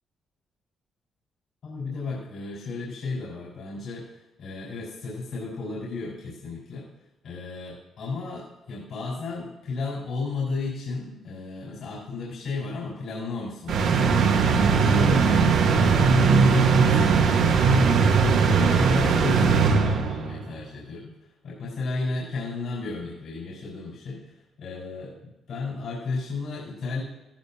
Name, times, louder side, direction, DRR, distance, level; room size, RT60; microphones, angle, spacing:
voice 1, 1.6-6.9 7.2-21.1 21.4-25.1 25.5-27.0, left 3 dB, 65° left, -6 dB, 5.2 m, -33 dB
sound 1, 13.7-20.4, right 5 dB, 80° right, 1.7 m, -19 dB
16.0 x 16.0 x 3.0 m, 0.99 s
cardioid pair, 90°, 0 cm